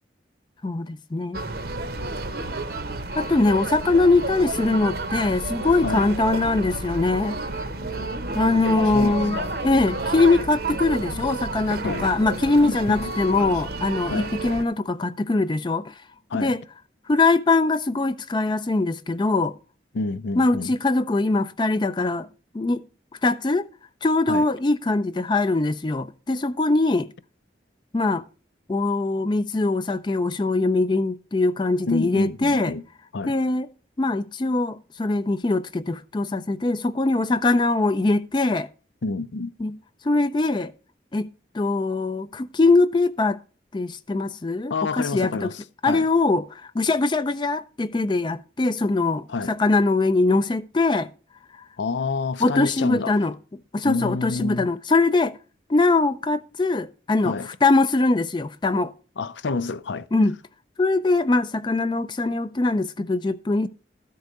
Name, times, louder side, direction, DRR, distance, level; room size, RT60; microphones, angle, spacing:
voice 1, 0.6-1.4 3.2-7.4 8.3-9.4 9.6-15.9 16.3-16.6 17.1-19.5 20.4-22.3 22.5-22.8 23.2-23.6 24.0-27.1 27.9-28.2 28.7-32.7 33.3-33.7 34.0-38.7 39.6-39.7 40.0-40.7 41.1-41.3 41.5-43.4 43.7-45.5 45.8-51.1 52.4-53.3 53.7-55.3 55.7-57.3 57.6-58.9 60.1-60.3 60.8-63.7, left 3 dB, 25° left, 0.4 m, -22 dB
sound 1, 1.3-14.6, right 2 dB, 55° right, 0.8 m, -31 dB
voice 2, 8.8-9.5 11.8-12.1 12.7-13.0 14.1-14.3 16.3-16.6 19.9-20.8 24.3-24.5 31.9-32.8 33.1-33.4 39.0-39.5 44.7-46.1 49.3-49.5 51.8-53.2 53.8-54.7 57.2-57.5 59.2-60.1, left 3 dB, 80° left, 0.5 m, -28 dB
12.5 x 4.7 x 6.5 m
head